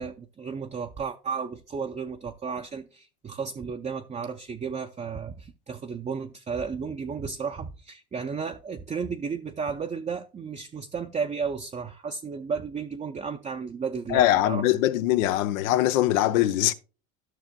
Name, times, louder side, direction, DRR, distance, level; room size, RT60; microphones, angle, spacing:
voice 1, 0.0-14.6, right 5 dB, 20° right, 0.5 m, -33 dB
voice 2, 14.1-16.7, left 13 dB, 90° left, 0.7 m, -22 dB
13.0 x 5.9 x 2.2 m
supercardioid pair, 95°, 39 cm